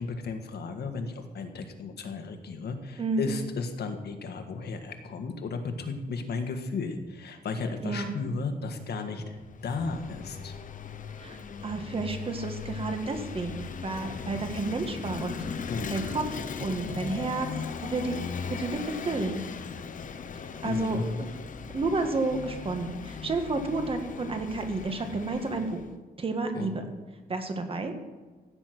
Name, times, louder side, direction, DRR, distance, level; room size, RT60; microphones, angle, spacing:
voice 1, 0.0-9.4 9.6-10.5 15.7-16.1 20.6-21.3 26.5-26.7, left 4 dB, 75° left, 6 dB, 1.8 m, -34 dB
voice 2, 3.0-3.3 7.8-8.1 11.2-15.4 15.9-17.5 17.8-18.2 18.5-19.4 20.6-21.3 21.7-25.8 26.2-26.8 27.3-27.9, right 3 dB, 35° right, 5 dB, 1.7 m, -31 dB
Vehicle / Engine, 9.3-25.9, left 6 dB, 50° left, 1.0 m, -38 dB
16.0 x 9.8 x 6.1 m, 1.4 s
wide cardioid pair, 175°, 17 cm